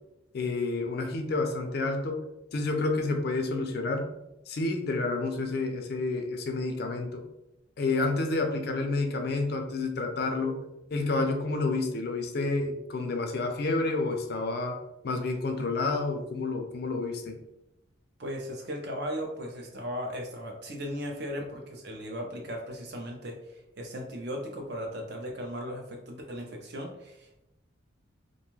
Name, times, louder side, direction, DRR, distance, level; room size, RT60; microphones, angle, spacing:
voice 1, 0.3-2.2 2.5-4.1 4.5-7.3 7.8-10.6 10.9-17.4, left 3 dB, 50° left, 5 dB, 0.4 m, -29 dB
voice 2, 18.2-27.5, equal, 50° right, 1 dB, 0.6 m, -37 dB
2.5 x 2.3 x 3.0 m, 0.89 s
head